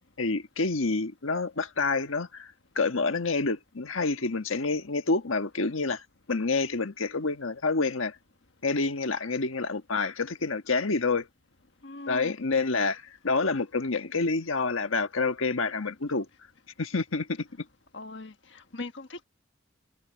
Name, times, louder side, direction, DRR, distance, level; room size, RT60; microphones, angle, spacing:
voice 1, 0.2-8.1 8.6-11.3 12.1-16.3 16.8-17.5, left 3 dB, 80° left, 1.4 m, -28 dB
voice 2, 11.8-12.3 17.9-19.2, left 2 dB, 60° left, 1.4 m, -40 dB
head